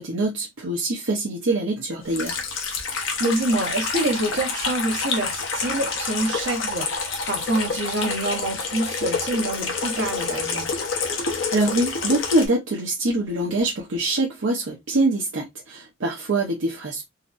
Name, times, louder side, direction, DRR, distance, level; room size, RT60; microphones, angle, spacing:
voice 1, 0.0-2.4 11.5-17.0, right 2 dB, 80° right, 0.8 m, -24 dB
Water tap faucet / Sink (filling or washing), 2.1-12.5, left 4 dB, 90° left, 0.9 m, -28 dB
voice 2, 3.2-10.7, right 2 dB, 65° right, 1.1 m, -26 dB
4.0 x 2.0 x 2.5 m
head